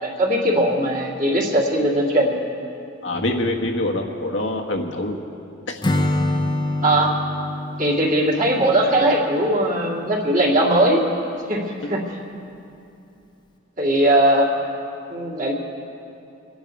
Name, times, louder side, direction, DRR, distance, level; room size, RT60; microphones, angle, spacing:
voice 1, 0.0-2.4 6.8-7.1 7.8-11.0 11.5-11.6 11.9-12.0 13.8-14.5 15.1-15.5, right 1 dB, 45° right, -3 dB, 2.5 m, -19 dB
voice 2, 3.0-5.2 5.7-5.8, left 1 dB, 80° left, 2 dB, 1.5 m, -25 dB
Acoustic guitar / Strum, 5.8-9.7, left 1 dB, 25° left, 0.8 m, -26 dB
25.5 x 10.5 x 4.7 m, 2.7 s
head